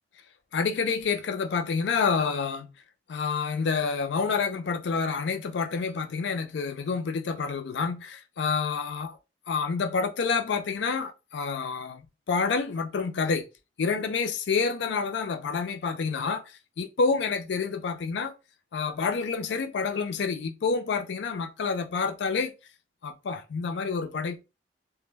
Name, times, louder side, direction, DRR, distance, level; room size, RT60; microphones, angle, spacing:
voice 1, 0.5-2.7 3.1-9.2 9.5-12.0 12.3-13.4 13.8-18.3 18.7-22.5 23.0-24.4, left 5 dB, 80° left, 0.4 m, -28 dB
2.1 x 2.0 x 3.1 m
head